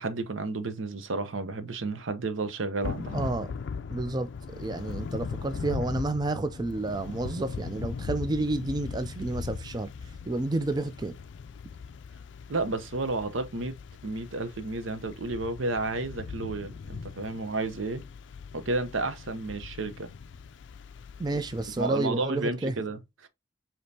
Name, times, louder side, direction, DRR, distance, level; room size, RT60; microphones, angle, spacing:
voice 1, 0.0-3.3 12.5-13.8 14.0-18.0 18.5-20.1 21.8-23.3, right 3 dB, 85° right, 0.7 m, -32 dB
Thunder / Rain, 2.8-21.9, left 5 dB, 65° left, 0.4 m, -39 dB
voice 2, 3.1-3.5 3.9-4.3 4.6-11.2 21.2-22.7, right 2 dB, 20° right, 0.4 m, -30 dB
5.1 x 2.9 x 2.7 m
head